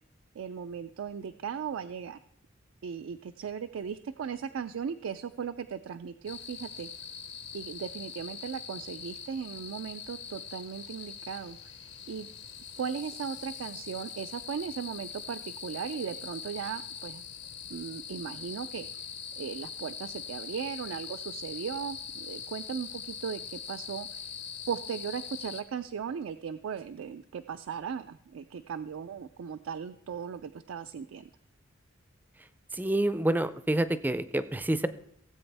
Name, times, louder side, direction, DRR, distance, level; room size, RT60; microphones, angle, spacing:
voice 1, 0.4-2.2 2.8-6.9 7.5-12.3 12.7-17.2 17.7-19.1 19.3-24.4 24.7-31.3, right 7 dB, 85° right, 9 dB, 0.4 m, -37 dB
sound 1, 6.2-25.6, left 7 dB, 60° left, 0.9 m, -42 dB
voice 2, 32.7-34.9, right 1 dB, 10° right, 13 dB, 0.4 m, -28 dB
17.0 x 7.8 x 3.4 m, 0.68 s
head